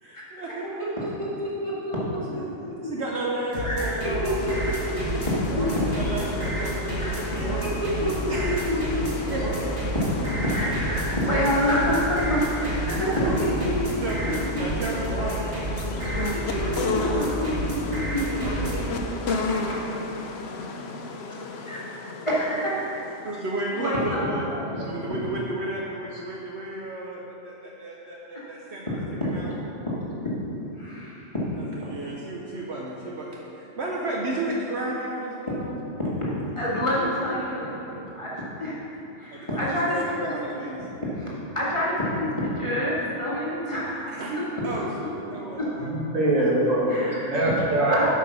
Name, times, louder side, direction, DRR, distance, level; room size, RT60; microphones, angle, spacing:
voice 1, 0.0-0.7 1.4-1.5 2.3-2.5 2.8-4.5 5.9-8.6 9.3-10.0 13.0-13.4 14.0-14.2 14.6-15.7 23.2-24.4 24.9-29.0 29.2-29.5 31.6-35.8 39.3-40.9 44.1-46.1, right 2 dB, 60° right, -3 dB, 1.1 m, -33 dB
voice 2, 1.2-2.4 2.8-2.9 3.6-3.7 4.0-4.3 4.6-5.9 7.0-9.1 10.5-14.6 16.0-18.7 19.3-19.6 21.6-21.8 22.3-22.9 23.7-24.7 28.0-28.5 29.2-29.4 29.9-30.0 30.8-31.2 36.0-36.1 36.6-38.3 38.6-40.0 40.3-40.4 41.0-44.2 45.0-45.7 46.9-47.3 47.9-48.1, equal, 25° left, -8 dB, 2.0 m, -28 dB
sound 1, 3.5-18.9, right 1 dB, 35° right, 1.7 m, -30 dB
sound 2, 4.4-23.9, left 3 dB, 60° left, 0.9 m, -34 dB
voice 3, 45.8-48.0, right 1 dB, 85° right, -5 dB, 2.2 m, -23 dB
8.3 x 6.1 x 5.7 m, 3.0 s
omnidirectional pair, 1.3 m